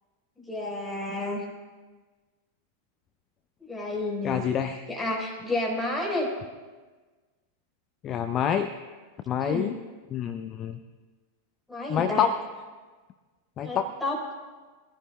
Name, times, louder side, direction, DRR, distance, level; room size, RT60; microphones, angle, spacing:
voice 1, 0.4-1.5 3.7-4.4 4.9-6.3 9.4-9.7 11.7-12.3 13.6-14.2, left 2 dB, 5° left, -3 dB, 4.3 m, -30 dB
voice 2, 4.2-4.9 8.0-8.7 9.3-9.8 10.1-10.8 11.9-12.4 13.6-13.9, left 8 dB, 30° left, 10 dB, 0.6 m, -27 dB
23.5 x 15.0 x 2.3 m, 1.4 s
figure-of-eight pair, 90°, 0 cm